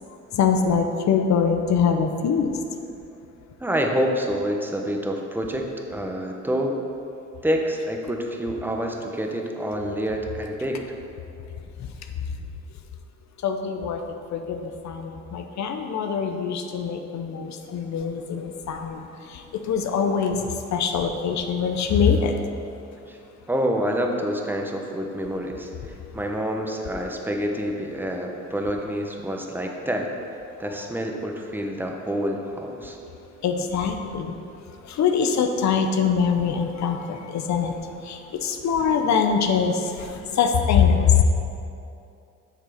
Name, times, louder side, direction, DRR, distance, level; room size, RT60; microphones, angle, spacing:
voice 1, 0.3-2.5 13.4-14.0 14.3-22.5 33.4-34.4 34.8-37.7 38.0-41.2, left 6 dB, 65° left, 5 dB, 0.8 m, -23 dB
voice 2, 3.6-6.8 7.4-10.8 23.0-23.2 23.5-30.1 30.6-33.0, equal, 5° right, 2 dB, 1.0 m, -27 dB
7.8 x 6.5 x 5.0 m, 2.6 s
cardioid pair, 90°, 30 cm